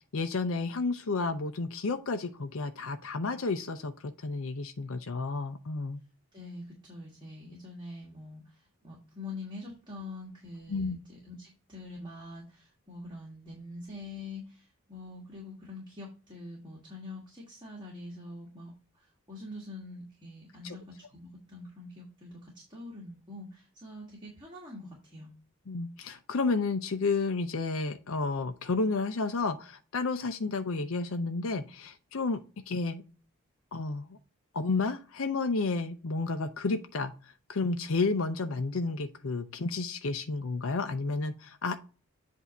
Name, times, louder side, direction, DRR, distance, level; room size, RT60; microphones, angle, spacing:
voice 1, 0.1-6.0 10.7-11.0 20.6-20.8 25.7-33.0 33.7-34.2 34.5-41.8, left 3 dB, 75° left, 7 dB, 0.6 m, -31 dB
voice 2, 6.3-25.3, left 2 dB, 20° right, -3 dB, 1.5 m, -45 dB
8.1 x 2.8 x 6.0 m, 0.35 s
head